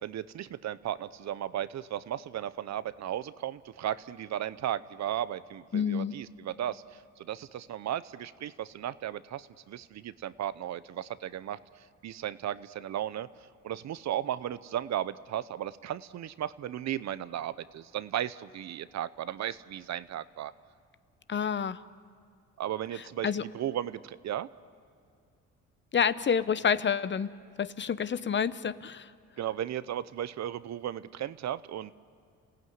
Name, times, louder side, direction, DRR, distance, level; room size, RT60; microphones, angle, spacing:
voice 1, 0.0-13.3 13.6-20.5 22.6-24.5 29.4-31.9, right 11 dB, 65° right, 16 dB, 0.8 m, -35 dB
voice 2, 5.7-6.1 21.3-21.8 22.9-23.4 25.9-27.3 27.6-29.1, left 7 dB, 40° left, 15 dB, 0.8 m, -28 dB
30.0 x 16.5 x 9.5 m, 2.4 s
cardioid pair, 90°, 30 cm